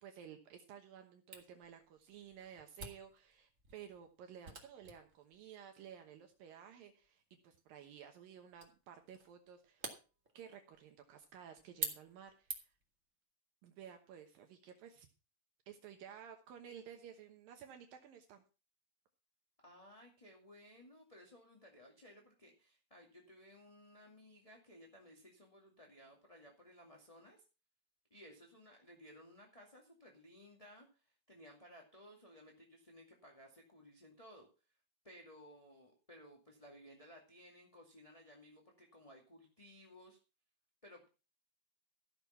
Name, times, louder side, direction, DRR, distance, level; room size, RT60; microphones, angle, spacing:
voice 1, 0.0-10.0 10.3-12.7 13.6-15.1 15.7-18.4, right 8 dB, 75° right, 5 dB, 2.8 m, -54 dB
Camera, 1.3-12.9, right 3 dB, 25° right, 1.8 m, -50 dB
voice 2, 19.6-27.4 28.1-34.5 35.0-40.2 40.8-41.1, equal, 15° left, -1 dB, 1.5 m, -59 dB
15.0 x 6.7 x 5.7 m, 0.33 s
omnidirectional pair, 4.2 m